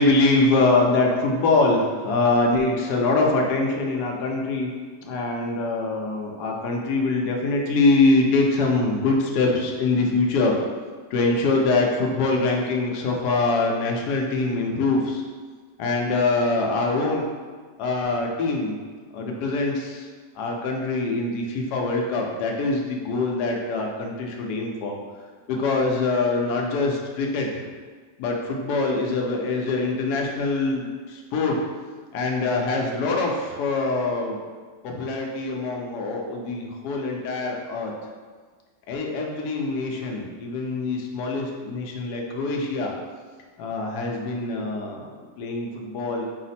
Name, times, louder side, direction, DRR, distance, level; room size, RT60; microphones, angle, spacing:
voice 1, 0.0-4.7 5.0-10.5 11.1-15.2 15.8-17.2 17.8-18.8 19.1-20.1 20.3-25.0 25.5-27.6 28.2-31.6 32.1-34.4 34.8-37.9 38.9-42.9 43.6-45.0 45.4-46.3, left 3 dB, 70° left, 0 dB, 1.1 m, -24 dB
4.9 x 2.0 x 4.1 m, 1.5 s
omnidirectional pair, 2.0 m